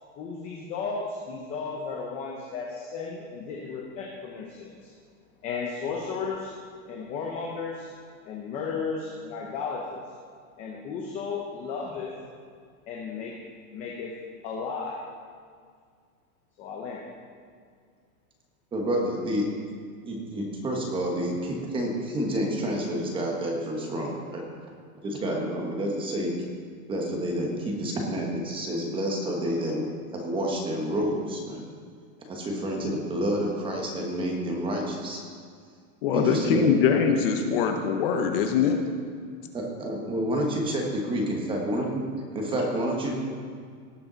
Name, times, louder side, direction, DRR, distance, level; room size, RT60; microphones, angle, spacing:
voice 1, 0.2-4.9 5.4-6.5 6.9-7.9 8.2-10.0 10.6-12.1 12.9-13.4 13.7-14.2 14.4-15.0 16.6-17.0, left 5 dB, 15° left, -1 dB, 0.6 m, -34 dB
voice 2, 18.7-19.5 20.0-24.4 25.0-26.3 26.9-31.6 32.2-35.2 36.1-36.7 39.5-42.0 42.3-43.1, equal, 10° right, 0 dB, 1.2 m, -29 dB
voice 3, 36.0-38.8, left 7 dB, 40° left, 5 dB, 0.9 m, -23 dB
18.0 x 6.7 x 4.0 m, 2.1 s
supercardioid pair, 170°, 44 cm